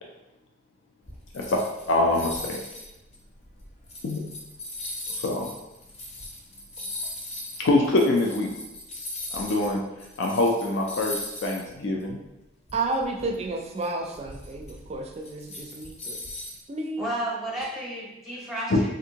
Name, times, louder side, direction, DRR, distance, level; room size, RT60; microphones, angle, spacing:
sound 1, 1.0-9.7 10.0-11.7 12.0-12.1 12.7-16.6, left 1 dB, 35° left, 0.6 m, -38 dB
voice 1, 1.9-2.6 4.0-4.2 5.1-5.5 7.6-8.5 9.3-9.8 10.2-11.1 11.4-12.2 18.7-18.8, left 2 dB, 75° left, 0 dB, 0.4 m, -24 dB
voice 2, 12.7-16.2 16.7-17.0, right 2 dB, 35° right, 3 dB, 0.4 m, -31 dB
voice 3, 17.0-18.9, right 1 dB, ahead, -5 dB, 0.7 m, -32 dB
3.5 x 2.5 x 2.8 m, 0.94 s
head